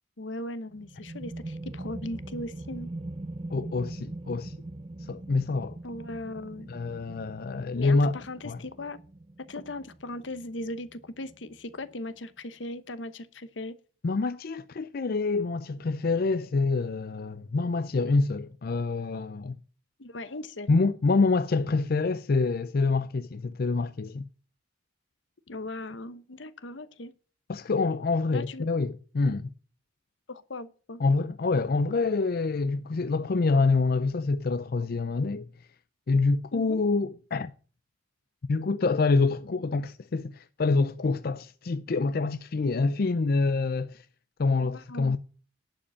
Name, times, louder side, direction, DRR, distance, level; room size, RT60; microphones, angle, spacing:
voice 1, 0.2-2.9 5.8-6.7 7.7-9.0 9.4-13.8 20.0-20.7 25.5-27.1 28.3-28.7 30.3-31.0 36.5-36.8 44.5-45.2, left 1 dB, 80° left, 1.0 m, -38 dB
sound 1, 0.7-12.1, right 2 dB, 30° right, 0.5 m, -42 dB
voice 2, 3.5-4.5 5.1-5.8 6.7-8.2 8.4-8.6 14.0-19.6 20.7-24.3 27.5-29.5 31.0-35.5 36.1-37.5 38.5-44.0 44.4-45.2, left 3 dB, 55° left, 0.5 m, -26 dB
11.5 x 5.2 x 8.3 m
head